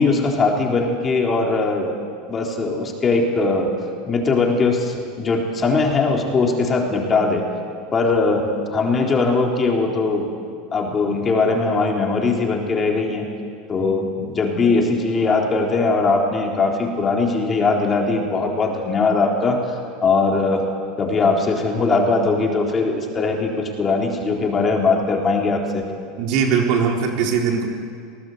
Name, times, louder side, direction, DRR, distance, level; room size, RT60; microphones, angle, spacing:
voice 1, 0.0-2.0 2.3-3.7 4.1-7.4 7.9-10.3 10.7-13.3 13.7-20.6 21.0-25.8, left 3 dB, 25° left, 0 dB, 3.9 m, -20 dB
voice 2, 26.2-27.7, right 6 dB, 60° right, 1 dB, 4.0 m, -20 dB
24.0 x 18.5 x 8.1 m, 2.2 s
supercardioid pair, 115°, 0 cm